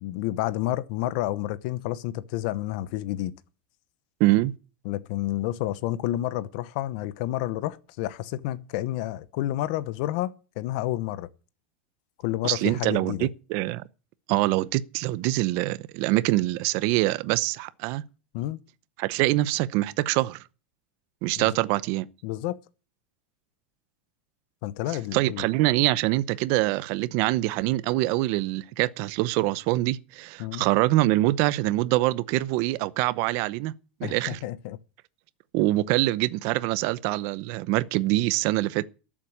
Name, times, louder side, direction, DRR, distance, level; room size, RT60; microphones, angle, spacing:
voice 1, 0.0-3.3 4.8-11.3 12.2-13.3 18.3-18.6 21.4-21.5 22.2-22.6 24.6-25.4 30.4-30.6 34.0-34.8, left 15 dB, 50° left, 0.9 m, -30 dB
voice 2, 4.2-4.5 12.4-13.8 14.3-18.0 19.0-20.4 21.2-22.1 25.1-33.7 34.0-34.4 35.5-38.9, right 17 dB, 45° right, 0.7 m, -24 dB
13.0 x 7.4 x 8.7 m
supercardioid pair, 165°, 6 cm